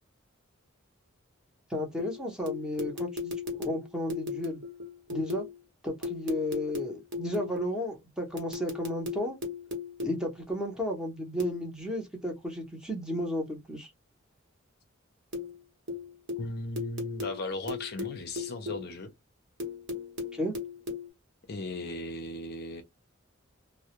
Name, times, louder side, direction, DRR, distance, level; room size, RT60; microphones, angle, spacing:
voice 1, 1.7-3.3 3.6-4.6 5.1-5.5 5.8-9.4 10.0-13.9 20.3-20.5, left 1 dB, 5° right, 0.7 m, -33 dB
sound 1, 2.0-5.6 6.0-7.8 8.4-10.3 11.4-11.7 15.3-15.6 15.9-18.9 19.6-21.1, left 4 dB, 60° right, 0.9 m, -37 dB
voice 2, 16.4-19.1 21.5-22.8, left 2 dB, 50° left, 0.5 m, -37 dB
2.2 x 2.0 x 2.8 m
head